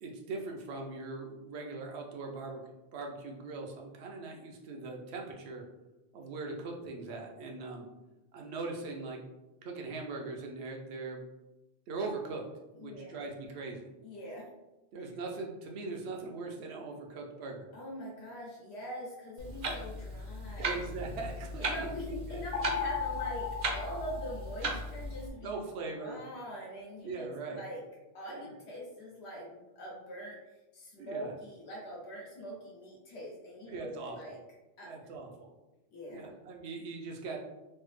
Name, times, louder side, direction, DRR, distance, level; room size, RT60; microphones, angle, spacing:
voice 1, 0.0-2.6 2.9-5.6 6.1-7.9 8.3-9.2 9.6-11.2 11.9-12.4 12.7-13.9 14.9-17.7 20.6-21.9 22.3-22.4 25.4-26.2 27.0-27.6 28.3-28.5 31.0-31.3 33.7-34.4 34.8-35.5 36.1-37.4, right 3 dB, 90° right, 1 dB, 0.9 m, -40 dB
voice 2, 12.8-13.2 14.0-14.5 15.0-15.1 17.7-20.7 21.6-25.5 26.0-27.8 28.1-30.4 30.7-34.4 34.8-34.9 35.9-36.3, equal, 90° left, -3 dB, 1.1 m, -43 dB
Clock, 19.4-25.3, right 2 dB, 60° right, 0.6 m, -37 dB
sound 1, 22.5-25.0, left 6 dB, 55° left, 0.5 m, -36 dB
3.2 x 2.0 x 3.1 m, 1.1 s
omnidirectional pair, 1.1 m